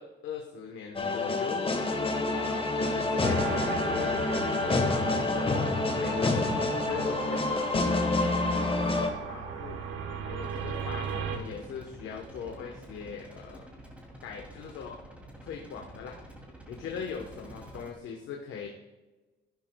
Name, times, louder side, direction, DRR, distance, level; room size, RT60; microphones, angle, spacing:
voice 1, 0.0-1.7 2.3-6.4 6.8-9.8 10.2-13.7 14.2-15.0 15.4-16.2 16.7-18.7, left 6 dB, 80° left, 1 dB, 1.1 m, -40 dB
sound 1, 1.0-9.1, left 3 dB, 30° left, 1.3 m, -28 dB
sound 2, 3.2-11.4, right 6 dB, 85° right, 1.2 m, -37 dB
sound 3, 10.4-17.9, right 1 dB, 5° right, 2.7 m, -48 dB
11.5 x 11.5 x 2.3 m, 1.2 s
cardioid pair, 90°, 20 cm